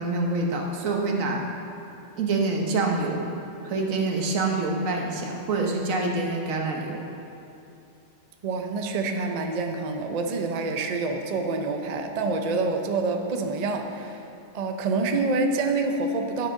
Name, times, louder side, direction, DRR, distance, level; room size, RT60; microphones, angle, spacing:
voice 1, 0.0-1.4 2.2-3.3 3.6-7.1, right 3 dB, 85° right, 1 dB, 1.4 m, -26 dB
voice 2, 8.4-14.2 14.5-16.5, right 3 dB, 45° right, 4 dB, 0.5 m, -27 dB
11.5 x 6.3 x 3.8 m, 2.6 s
omnidirectional pair, 1.3 m